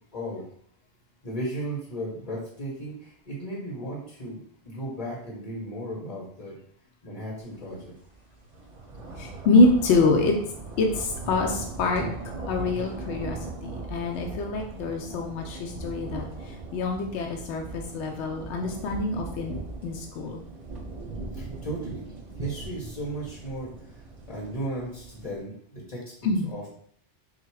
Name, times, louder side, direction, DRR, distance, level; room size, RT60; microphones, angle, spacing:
voice 1, 0.1-0.4 1.2-4.4 4.6-6.5 7.0-7.9 21.3-22.0 22.4-26.1 26.5-26.7, right 1 dB, 35° left, -4 dB, 1.0 m, -35 dB
sound 1, 7.6-7.8 8.1-25.4, right 2 dB, 40° right, 0.5 m, -39 dB
voice 2, 9.2-10.4 10.8-12.1 12.5-13.4 13.6-16.3 16.7-19.6 19.8-20.4 26.2-26.5, left 3 dB, 80° left, 2 dB, 0.9 m, -25 dB
3.6 x 2.5 x 4.6 m, 0.62 s
omnidirectional pair, 1.2 m